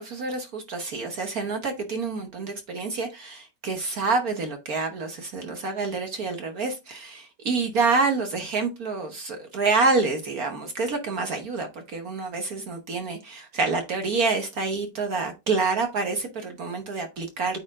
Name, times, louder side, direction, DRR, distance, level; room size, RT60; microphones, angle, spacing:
voice 1, 0.0-17.6, right 4 dB, 55° right, 1.5 m, -27 dB
8.7 x 4.4 x 3.6 m
omnidirectional pair, 2.0 m